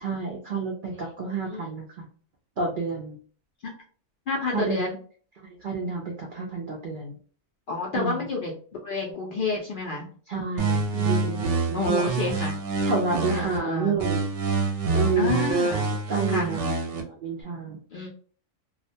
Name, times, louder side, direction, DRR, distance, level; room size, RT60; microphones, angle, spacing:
voice 1, 0.0-2.1 2.6-3.2 4.5-4.8 5.6-7.2 7.9-8.3 10.3-12.1 12.8-14.3 14.9-15.5 15.9-18.1, right 4 dB, 80° right, 0 dB, 0.4 m, -30 dB
voice 2, 4.3-5.0 7.7-8.5 8.8-10.1 10.9-11.2 11.7-12.5 13.3-14.0 15.2-15.9 16.3-16.5 17.9-18.1, left 3 dB, 75° left, -2 dB, 0.5 m, -29 dB
sound 1, 10.6-13.6 14.0-17.0, right 3 dB, 65° right, 0.8 m, -26 dB
2.3 x 2.1 x 2.6 m, 0.43 s
omnidirectional pair, 1.4 m